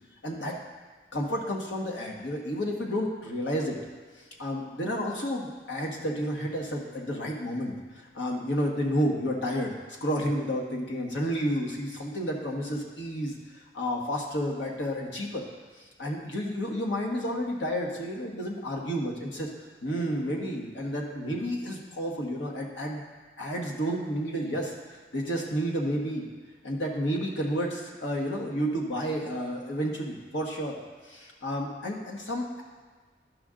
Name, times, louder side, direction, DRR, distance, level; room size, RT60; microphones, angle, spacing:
voice 1, 0.2-0.6 1.1-3.8 4.4-15.4 15.7-19.5 19.8-23.0 23.4-24.7 25.1-26.3 26.6-32.6, equal, 90° left, -1 dB, 1.4 m, -31 dB
12.0 x 5.2 x 3.8 m, 1.5 s
head